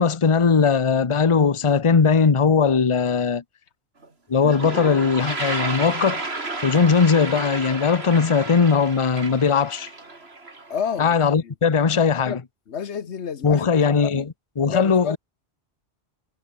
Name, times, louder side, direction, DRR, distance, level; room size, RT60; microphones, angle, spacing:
voice 1, 0.0-3.4 4.3-6.2 6.6-9.9 11.0-12.4 13.4-15.2, left 5 dB, 30° left, 0.9 m, -19 dB
Toilet flush, 4.0-4.1 4.3-11.2, right 3 dB, 65° right, 3.4 m, -32 dB
voice 2, 10.7-11.5 12.2-12.4 12.7-13.7 14.0-14.2 14.7-15.2, left 7 dB, 90° left, 1.5 m, -30 dB
omnidirectional pair, 1.1 m